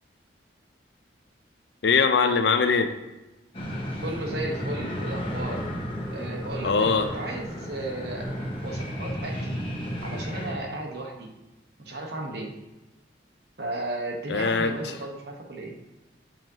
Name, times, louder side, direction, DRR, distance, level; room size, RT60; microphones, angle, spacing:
voice 1, 1.8-2.9 6.6-7.1 14.3-14.9, left 5 dB, 65° left, 8 dB, 0.5 m, -22 dB
sound 1, 3.5-10.5, equal, 30° left, 1.2 m, -33 dB
voice 2, 4.0-5.7 6.1-8.3 8.6-9.5 10.0-11.3 11.8-12.5 13.6-15.7, right 2 dB, 60° right, 2 dB, 1.0 m, -34 dB
7.3 x 5.2 x 2.8 m, 1.0 s
head